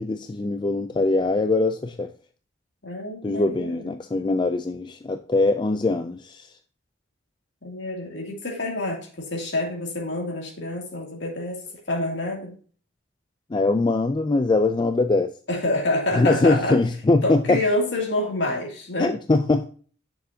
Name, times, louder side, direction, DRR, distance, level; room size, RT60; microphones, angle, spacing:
voice 1, 0.0-2.1 3.2-6.5 13.5-15.3 16.2-17.6 19.0-19.7, left 2 dB, 25° left, 0.3 m, -22 dB
voice 2, 2.8-3.9 7.6-11.6 11.9-12.5 15.5-16.8 17.2-19.1, left 1 dB, 65° left, 2.6 m, -27 dB
9.6 x 6.4 x 2.7 m
head